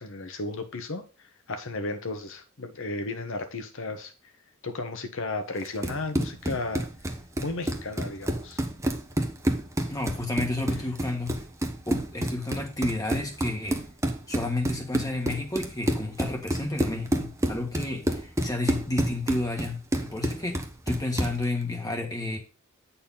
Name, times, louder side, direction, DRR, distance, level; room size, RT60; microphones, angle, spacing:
voice 1, 0.0-4.1 4.6-6.9 7.4-8.6, left 2 dB, 65° left, 7 dB, 1.3 m, -34 dB
Run, 5.6-21.4, right 1 dB, 15° right, 1.0 m, -29 dB
voice 2, 9.8-11.4 11.9-13.8 14.3-22.4, left 2 dB, 15° left, 2 dB, 1.5 m, -31 dB
8.8 x 4.3 x 5.6 m, 0.34 s
head